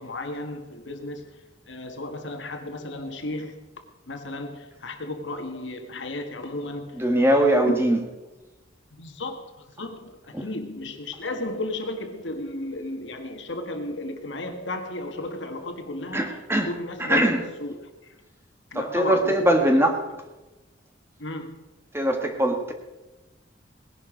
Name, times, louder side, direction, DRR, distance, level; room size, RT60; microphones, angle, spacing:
voice 1, 0.0-7.0 7.3-7.7 8.9-18.2 18.7-19.8 21.2-21.6, left 2 dB, 65° left, 1.7 m, -34 dB
voice 2, 7.0-8.0 10.3-10.4 16.1-16.7 17.0-17.4 18.7-20.0 21.9-22.7, right 1 dB, 10° right, 1.5 m, -21 dB
19.0 x 11.0 x 5.1 m
head